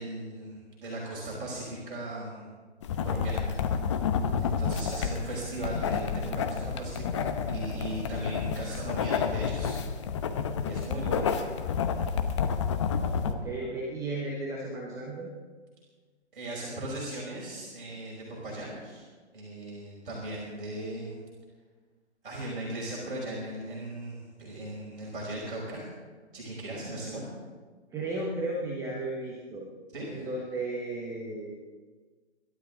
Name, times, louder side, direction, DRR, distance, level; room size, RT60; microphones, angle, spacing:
voice 1, 0.0-2.4 3.0-3.4 4.4-9.8 10.6-11.4 16.3-19.1 19.3-21.2 22.2-25.9 26.3-27.2 29.9-30.3, right 1 dB, 50° right, -4 dB, 5.8 m, -38 dB
sound 1, 2.8-13.3, left 6 dB, 25° left, 0.9 m, -30 dB
voice 2, 4.7-5.4 11.0-11.2 13.2-15.3 27.9-29.7 30.1-31.6, right 2 dB, 10° right, -2 dB, 1.1 m, -35 dB
26.0 x 12.5 x 3.9 m, 1.4 s
figure-of-eight pair, 145°, 34 cm